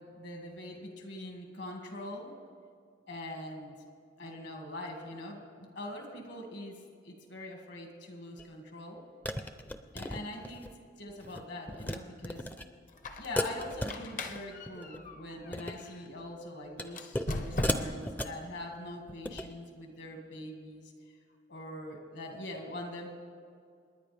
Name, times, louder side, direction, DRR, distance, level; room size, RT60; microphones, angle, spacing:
voice 1, 0.0-2.3 3.1-3.8 4.2-9.0 9.9-12.5 13.2-20.9 21.5-23.1, left 1 dB, 65° left, 2 dB, 2.1 m, -43 dB
sound 1, 8.4-8.5 9.2-10.8 11.1-11.4 11.7-12.0 12.2-12.7 13.4-14.4 14.7-15.0 15.4-15.8 16.8-17.3 17.6-18.4 19.1-19.5, left 1 dB, 10° left, 0.5 m, -35 dB
Squeak, 12.9-16.1 16.9-18.2, left 1 dB, 40° left, 0.8 m, -39 dB
28.0 x 10.5 x 3.4 m, 2.3 s
head